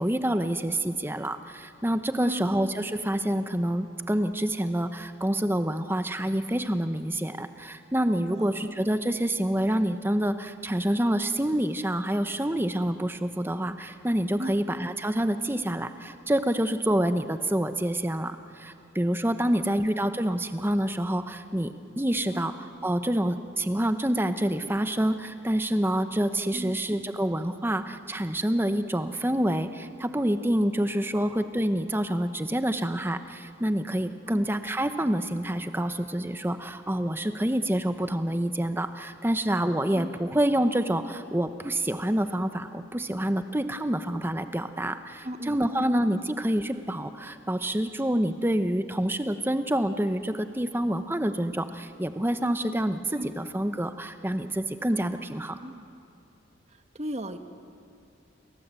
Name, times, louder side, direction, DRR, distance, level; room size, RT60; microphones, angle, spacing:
voice 1, 0.0-22.5 22.8-55.6, right 1 dB, 10° right, 9 dB, 0.9 m, -27 dB
voice 2, 45.2-45.6 53.1-53.3 55.6-55.9 56.9-57.4, right 1 dB, 35° right, 8 dB, 1.3 m, -36 dB
29.0 x 22.0 x 8.3 m, 2.6 s
head